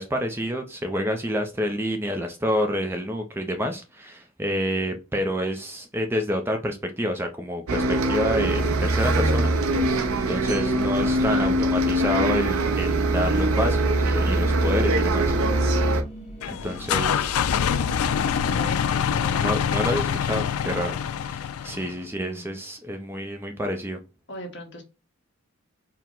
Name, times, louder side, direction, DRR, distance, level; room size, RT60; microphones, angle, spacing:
voice 1, 0.0-9.5 10.2-15.3 16.5-17.3 19.4-20.9 21.2-24.0, equal, 10° right, 0.4 m, -28 dB
Bus, 7.7-16.0, right 1 dB, 90° right, 0.6 m, -22 dB
sound 1, 12.3-18.6, right 1 dB, 30° left, 0.9 m, -42 dB
sound 2, 16.4-22.0, left 8 dB, 90° left, 0.4 m, -25 dB
voice 2, 18.2-19.9 22.0-22.6 24.3-24.8, equal, 55° left, 1.2 m, -41 dB
4.5 x 2.1 x 3.7 m
head